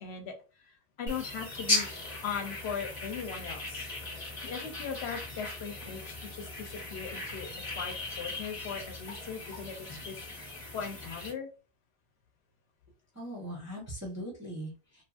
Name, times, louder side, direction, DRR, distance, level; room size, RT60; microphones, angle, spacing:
voice 1, 0.0-1.9 2.2-3.8 4.4-7.5 7.8-11.5, left 7 dB, 80° left, 4 dB, 0.9 m, -39 dB
sound 1, 1.1-11.3, left 2 dB, 30° left, 1.1 m, -37 dB
voice 2, 13.1-15.0, equal, 15° right, -5 dB, 0.9 m, -40 dB
2.9 x 2.5 x 2.4 m, 0.34 s
omnidirectional pair, 1.1 m